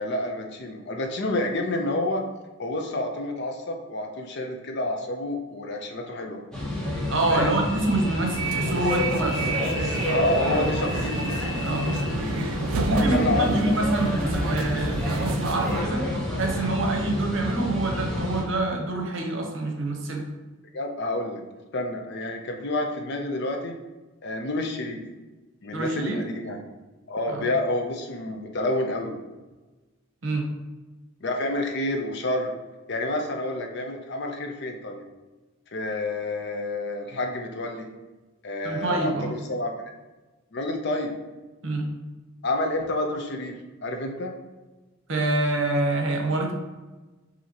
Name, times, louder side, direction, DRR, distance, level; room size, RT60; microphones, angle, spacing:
voice 1, 0.0-2.2 2.6-6.4 7.3-7.6 10.1-11.3 12.9-13.8 20.7-21.4 21.7-23.8 24.2-25.0 25.6-26.6 27.1-29.1 31.2-32.5 32.9-35.1 35.7-37.9 38.4-39.7 40.5-41.1 42.4-44.3, left 2 dB, 50° left, 4 dB, 0.5 m, -29 dB
sound 1, 6.5-18.4, left 1 dB, 5° left, 0.9 m, -28 dB
voice 2, 7.1-9.4 11.6-11.9 12.8-16.1 16.4-20.3 25.7-26.2 27.3-27.5 30.2-30.5 38.6-39.3 41.6-41.9 45.1-46.5, right 2 dB, 60° right, 1 dB, 0.8 m, -26 dB
sound 2, 8.3-15.8, right 5 dB, 75° right, 0.3 m, -33 dB
5.5 x 2.8 x 2.9 m, 1.2 s
head